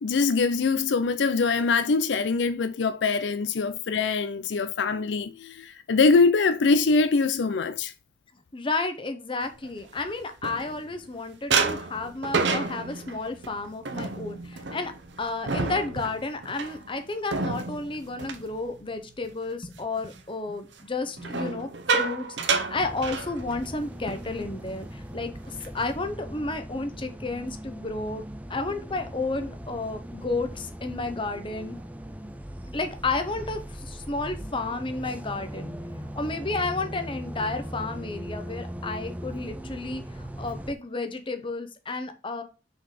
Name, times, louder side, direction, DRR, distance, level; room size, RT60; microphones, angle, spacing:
voice 1, 0.0-7.9, left 4 dB, 75° left, 0.5 m, -23 dB
voice 2, 8.5-14.9 15.2-25.3 25.7-28.2 28.5-31.8 32.7-35.7 36.2-42.4, left 3 dB, 30° left, 0.9 m, -32 dB
sound 1, 9.6-11.1 11.5-19.3 19.7-20.0 21.2-23.8 24.1-24.3 24.6-24.9 25.4-26.0, right 4 dB, 80° right, 0.8 m, -30 dB
sound 2, 22.7-40.7, equal, 10° right, 0.5 m, -39 dB
6.0 x 4.0 x 4.9 m
head